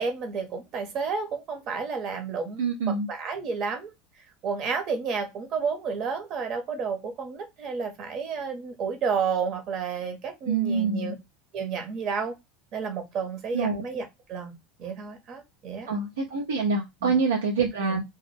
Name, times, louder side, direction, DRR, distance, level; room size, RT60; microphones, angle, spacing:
voice 1, 0.0-2.6 2.9-3.9 4.4-11.2 11.5-12.4 12.7-14.5 14.8-15.9 17.0-17.2 17.8-18.0, right 5 dB, 50° right, 0.9 m, -31 dB
voice 2, 2.6-3.1 10.5-11.1 13.5-13.8 15.9-18.0, right 4 dB, 90° right, 0.4 m, -26 dB
2.2 x 2.0 x 3.2 m
hypercardioid pair, 95°, 0 cm